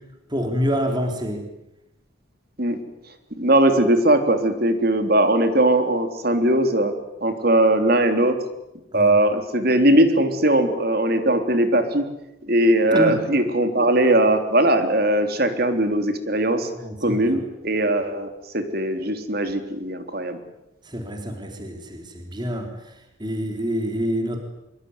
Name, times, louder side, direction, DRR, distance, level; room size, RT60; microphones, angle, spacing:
voice 1, 0.3-1.4 8.9-9.1 12.9-13.2 16.8-17.4 20.9-22.7 23.2-24.4, equal, 20° right, 4 dB, 3.9 m, -26 dB
voice 2, 3.4-6.9 7.2-8.4 8.9-12.0 12.5-16.7 17.0-20.4, right 1 dB, 50° right, 7 dB, 3.6 m, -20 dB
25.0 x 23.5 x 9.8 m, 0.90 s
head